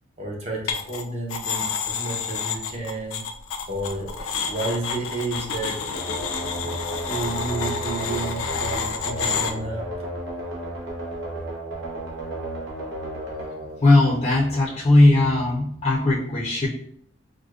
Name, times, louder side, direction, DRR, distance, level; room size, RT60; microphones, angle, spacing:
voice 1, 0.2-3.2 3.7-5.8 7.1-9.9, right 2 dB, 30° right, -1 dB, 0.8 m, -31 dB
sound 1, 0.7-1.0 1.3-9.5, left 6 dB, 85° left, 0.4 m, -29 dB
sound 2, 5.9-14.6, right 1 dB, 65° right, 0.8 m, -33 dB
voice 2, 13.8-16.7, left 2 dB, 30° left, -6 dB, 0.5 m, -18 dB
4.8 x 2.1 x 2.4 m, 0.66 s
head